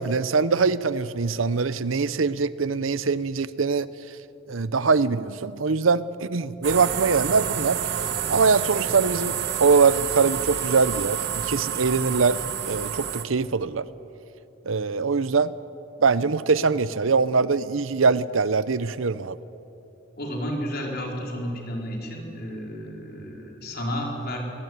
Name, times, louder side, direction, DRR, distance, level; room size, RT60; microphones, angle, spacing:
voice 1, 0.0-3.9 4.5-7.9 8.3-12.4 12.7-13.9 14.7-15.5 16.0-19.4, right 4 dB, 80° right, 16 dB, 0.7 m, -23 dB
sound 1, 6.6-13.3, right 9 dB, 55° right, 1.1 m, -29 dB
voice 2, 20.2-24.4, equal, 55° left, 0 dB, 4.6 m, -32 dB
23.0 x 19.0 x 9.5 m, 3.0 s
head